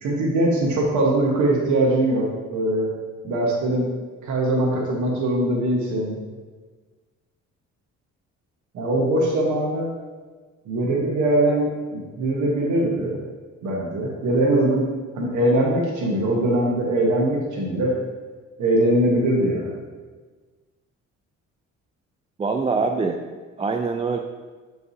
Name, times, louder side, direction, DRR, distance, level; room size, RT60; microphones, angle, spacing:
voice 1, 0.0-2.9 3.2-3.9 4.2-6.2 8.7-9.9 10.7-13.2 13.6-14.9 15.1-18.0 18.6-19.7, right 1 dB, 75° right, -2 dB, 1.2 m, -21 dB
voice 2, 22.4-23.2 23.6-24.2, right 4 dB, 20° right, 4 dB, 0.3 m, -23 dB
8.0 x 4.7 x 2.8 m, 1.4 s
cardioid pair, 90°, 30 cm